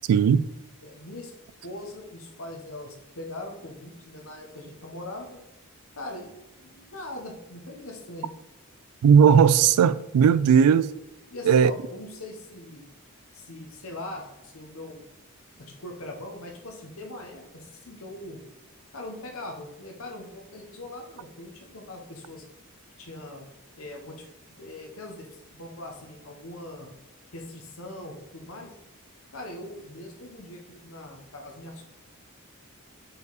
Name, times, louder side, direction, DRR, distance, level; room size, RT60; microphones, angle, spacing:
voice 1, 0.1-0.5 9.0-10.9 11.4-11.7, right 7 dB, 80° right, 0.3 m, -17 dB
voice 2, 0.8-1.3 1.6-5.4 6.0-6.3 6.6-8.3 11.3-12.9 13.3-15.0 15.6-18.4 18.9-22.4 23.0-23.5 23.8-26.9 27.3-28.7 29.3-31.8, left 1 dB, 65° left, 1.2 m, -41 dB
5.3 x 4.7 x 4.0 m
head